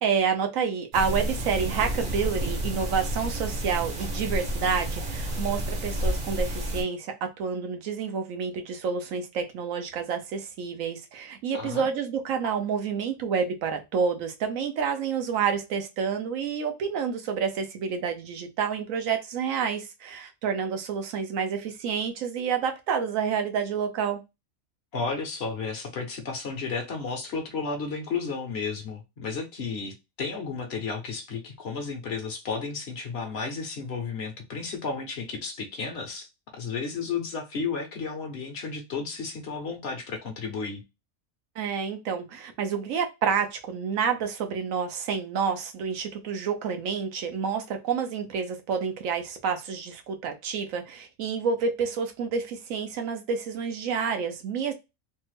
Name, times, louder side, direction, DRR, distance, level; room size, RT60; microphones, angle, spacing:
voice 1, 0.0-24.2 41.6-54.7, right 6 dB, 85° right, 1.1 m, -29 dB
sound 1, 0.9-6.8, right 1 dB, 45° right, 0.8 m, -30 dB
voice 2, 11.5-11.9 24.9-36.3 36.5-40.8, left 4 dB, 55° left, 0.9 m, -33 dB
3.3 x 2.1 x 3.1 m
omnidirectional pair, 1.4 m